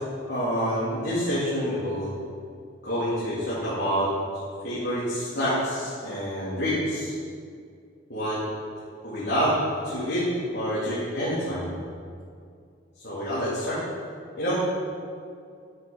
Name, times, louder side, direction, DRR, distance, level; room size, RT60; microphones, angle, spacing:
voice 1, 0.3-2.1 2.8-4.1 4.6-7.1 8.1-8.4 9.0-9.6 9.8-11.7 13.0-13.8 14.4-14.6, equal, 55° left, -11 dB, 3.6 m, -27 dB
11.5 x 9.3 x 5.7 m, 2.3 s
head